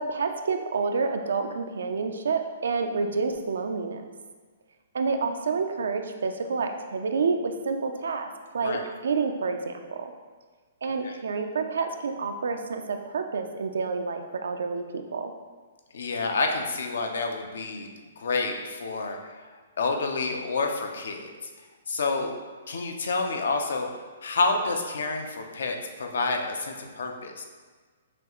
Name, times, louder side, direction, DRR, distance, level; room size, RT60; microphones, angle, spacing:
voice 1, 0.0-4.0 4.9-8.3 8.5-8.8 9.0-10.1 10.8-15.3, right 4 dB, 85° right, 6 dB, 0.4 m, -28 dB
voice 2, 15.9-17.9 18.2-19.5 19.8-21.5 21.9-22.3 22.7-23.9 24.2-27.4, left 3 dB, 80° left, 4 dB, 0.6 m, -29 dB
5.9 x 2.4 x 3.0 m, 1.4 s
hypercardioid pair, 160°, 0 cm